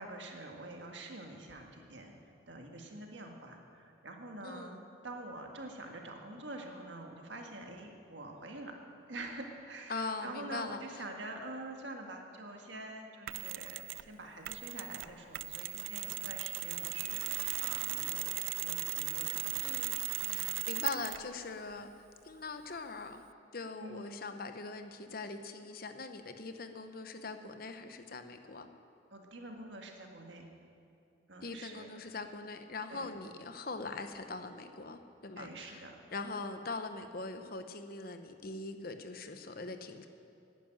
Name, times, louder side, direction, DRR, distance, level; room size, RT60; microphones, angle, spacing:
voice 1, 0.0-2.1 2.5-4.7 5.0-8.8 9.1-19.8 20.2-20.5 23.8-24.2 29.1-30.5 31.3-31.9 32.9-33.1 35.4-36.0, right 2 dB, 70° right, 2 dB, 1.7 m, -46 dB
voice 2, 4.4-4.8 9.9-11.0 19.6-20.0 20.3-21.9 22.2-23.2 23.5-28.7 31.4-35.8 36.1-40.1, left 3 dB, 50° left, 8 dB, 0.8 m, -42 dB
Mechanisms, 13.3-14.1 14.4-21.3, right 18 dB, 90° right, 0.3 m, -37 dB
11.0 x 10.5 x 9.1 m, 2.5 s
head